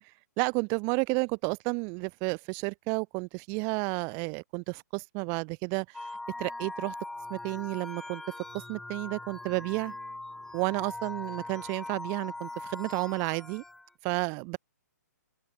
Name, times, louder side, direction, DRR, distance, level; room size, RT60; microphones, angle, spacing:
voice 1, 0.4-6.1 6.4-6.9 7.3-8.2 8.5-9.9 10.5-13.6 14.0-14.6, right 36 dB, 25° right, 1.2 m, -31 dB
sound 1, 5.9-13.9, left 2 dB, 5° left, 2.2 m, -41 dB
hypercardioid pair, 155°, 10 cm